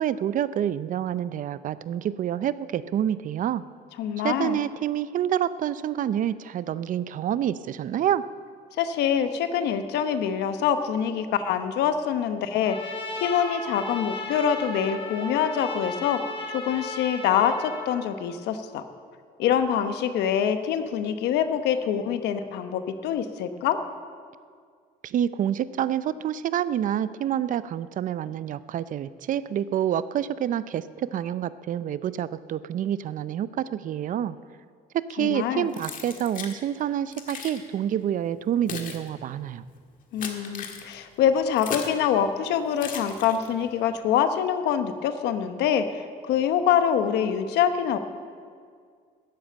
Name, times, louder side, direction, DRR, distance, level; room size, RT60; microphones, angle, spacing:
voice 1, 0.0-3.6 4.2-8.2 25.0-34.4 34.9-39.6, right 10 dB, 50° right, 16 dB, 0.5 m, -27 dB
voice 2, 4.0-4.6 8.8-12.9 13.2-16.2 16.5-18.8 19.4-23.8 35.2-35.7 40.1-48.0, left 8 dB, 80° left, 9 dB, 1.0 m, -25 dB
Trumpet, 12.6-17.9, left 3 dB, 30° left, 1.6 m, -35 dB
Keys jangling, 35.7-36.6 37.1-37.6 38.3-42.0 42.8-43.7, left 6 dB, 50° left, 1.7 m, -37 dB
13.5 x 8.7 x 8.8 m, 2.1 s
cardioid pair, 110°, 17 cm